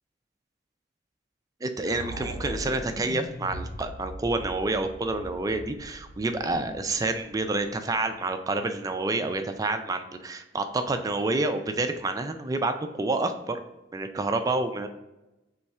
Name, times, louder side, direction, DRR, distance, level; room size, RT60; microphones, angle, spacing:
voice 1, 1.6-13.6 13.9-14.9, right 2 dB, 20° right, 7 dB, 0.3 m, -28 dB
sound 1, 1.8-7.9, equal, 50° left, 0.7 m, -40 dB
4.2 x 3.1 x 3.5 m, 1.0 s
head